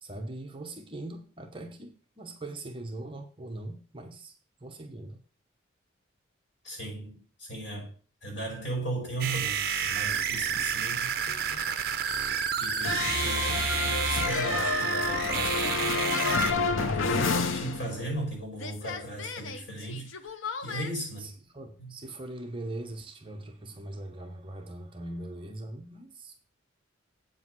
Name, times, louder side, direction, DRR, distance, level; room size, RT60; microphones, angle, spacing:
voice 1, 0.0-4.3 4.6-5.2 11.3-11.6 21.2-26.4, right 2 dB, 25° right, 1.1 m, -41 dB
voice 2, 6.6-7.9 8.2-11.2 12.6-15.9 17.0-20.3 20.6-21.3 21.8-22.0, right 1 dB, 60° left, 5.1 m, -37 dB
sound 1, 9.2-16.5, right 7 dB, 50° right, 0.8 m, -30 dB
sound 2, 12.8-18.3 18.6-20.9, left 4 dB, 80° left, 0.8 m, -30 dB
8.3 x 5.2 x 6.2 m
head